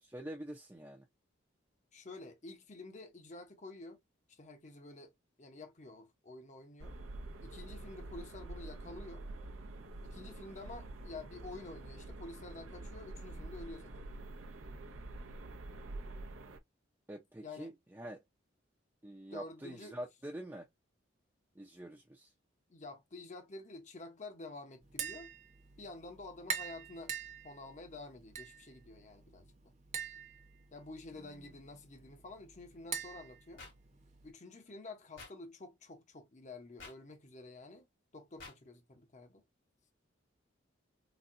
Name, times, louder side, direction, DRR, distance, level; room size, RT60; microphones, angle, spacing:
voice 1, 0.0-1.0 17.1-18.2 19.0-20.7 21.6-22.3 31.1-31.5, right 1 dB, 10° right, 0.5 m, -46 dB
voice 2, 1.9-4.0 4.3-5.1 5.4-7.0 7.4-9.2 10.0-13.9 17.4-17.7 19.3-20.0 22.7-25.3 25.8-27.1 27.4-29.5 30.7-33.6 34.2-37.9 38.1-39.4, left 2 dB, 35° left, 0.7 m, -49 dB
sound 1, 6.8-16.6, right 2 dB, 90° right, 0.6 m, -47 dB
Tap, 24.8-34.3, right 7 dB, 35° right, 0.8 m, -45 dB
sound 2, 33.6-33.7 35.2-35.3 36.8-36.9 38.4-38.5, left 3 dB, 70° left, 2.2 m, -49 dB
4.1 x 2.3 x 2.5 m
head